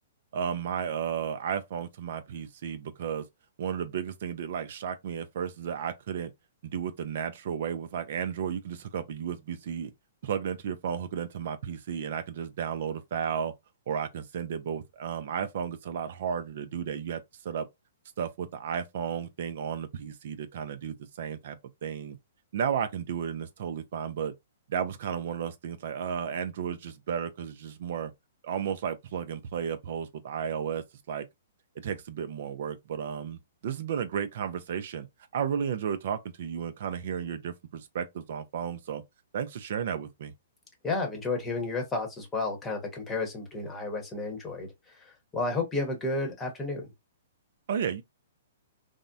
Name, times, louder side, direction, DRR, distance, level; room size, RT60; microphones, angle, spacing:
voice 1, 0.3-3.2 3.6-6.3 6.6-9.9 10.2-13.5 13.9-17.7 18.2-21.6 21.8-22.2 22.5-24.3 24.7-28.1 28.4-31.3 31.8-35.1 35.3-39.0 39.3-40.3 47.7-48.0, right 8 dB, 60° right, 0.4 m, -33 dB
voice 2, 40.8-46.9, left 3 dB, 15° left, 0.9 m, -32 dB
3.4 x 2.1 x 2.6 m
hypercardioid pair, 145°, 0 cm